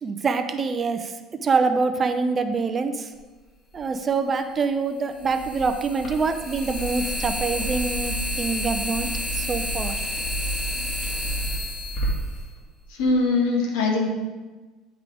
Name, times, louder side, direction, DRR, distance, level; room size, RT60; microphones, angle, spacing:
voice 1, 0.0-3.1 3.7-10.0, right 4 dB, 25° right, 8 dB, 0.5 m, -25 dB
sound 1, 3.7-3.8 5.2-13.1, equal, 35° left, 2.0 m, -29 dB
voice 2, 12.9-14.1, left 3 dB, 90° left, 2 dB, 1.5 m, -22 dB
9.9 x 3.7 x 4.8 m, 1.3 s
cardioid pair, 140°, 0 cm